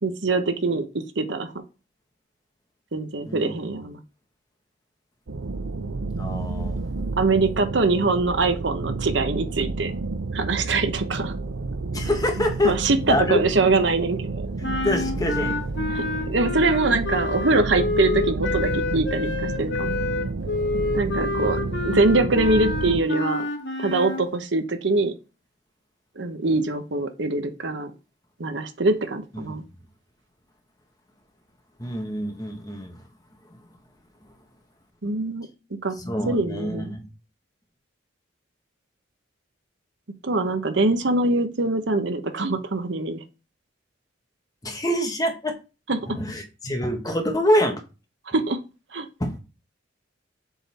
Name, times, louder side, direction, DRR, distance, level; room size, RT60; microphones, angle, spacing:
voice 1, 0.0-1.5 2.9-4.0 7.2-9.9 10.3-11.3 12.6-14.5 15.9-19.3 19.6-19.9 20.9-21.6 21.9-23.5 23.8-25.1 26.2-27.9 28.4-29.6 35.0-35.5 35.8-36.0 36.3-36.9 40.2-43.2 45.9-46.0 48.3-48.6 48.9-49.1, right 3 dB, 65° right, 0.9 m, -23 dB
sound 1, 5.3-23.0, right 3 dB, 90° right, 0.7 m, -30 dB
voice 2, 6.2-6.9 11.9-12.7 13.1-13.4 14.6-15.6 29.3-29.5 31.8-33.0 36.0-37.1 44.6-45.5 46.0-47.8 49.2-49.4, equal, 20° left, 1.1 m, -25 dB
sound 2, 14.6-24.3, left 3 dB, 60° left, 1.3 m, -28 dB
7.1 x 3.8 x 4.2 m
head